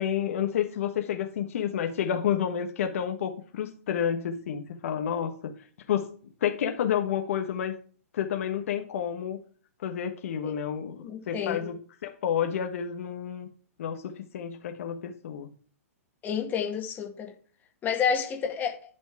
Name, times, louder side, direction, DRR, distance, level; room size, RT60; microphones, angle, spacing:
voice 1, 0.0-5.5 5.9-6.1 6.4-7.8 8.1-9.4 9.8-13.5 13.8-15.5, left 9 dB, 60° left, 1.3 m, -30 dB
voice 2, 11.0-11.7 16.2-17.3 17.8-18.8, left 7 dB, 20° left, 1.8 m, -29 dB
11.5 x 4.4 x 4.8 m
hypercardioid pair, 130°, 8 cm